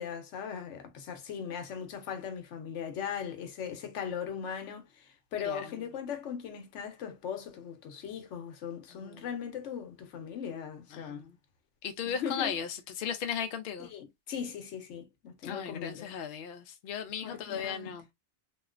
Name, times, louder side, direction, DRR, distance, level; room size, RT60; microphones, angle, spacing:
voice 1, 0.0-5.0 5.3-11.2 12.1-12.5 13.8-16.1 17.2-18.0, left 7 dB, 80° left, 1.0 m, -39 dB
voice 2, 8.9-9.3 10.9-11.4 11.8-13.9 15.4-18.1, left 8 dB, 60° left, 0.7 m, -36 dB
3.0 x 2.4 x 2.3 m
omnidirectional pair, 1.2 m